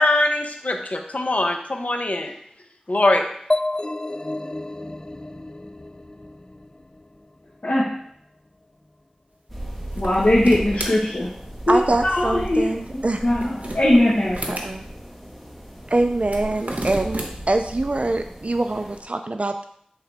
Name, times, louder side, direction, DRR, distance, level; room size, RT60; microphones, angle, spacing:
voice 1, 0.0-2.3 2.9-3.3, left 2 dB, 70° left, 4 dB, 0.8 m, -22 dB
sound 1, 3.5-7.2, left 2 dB, 30° left, 0.3 m, -30 dB
sound 2, 9.5-19.0, right 1 dB, ahead, 1.4 m, -36 dB
voice 2, 9.9-11.3 11.7-14.6, left 1 dB, 85° left, -8 dB, 1.3 m, -20 dB
sound 3, 9.9-10.9 13.2-14.7 16.2-17.3, right 1 dB, 70° right, 1.0 m, -32 dB
voice 3, 11.7-13.2 14.5-14.8 15.9-19.7, right 2 dB, 55° right, 7 dB, 0.4 m, -24 dB
7.9 x 3.8 x 3.4 m, 0.66 s
wide cardioid pair, 40°, 3 cm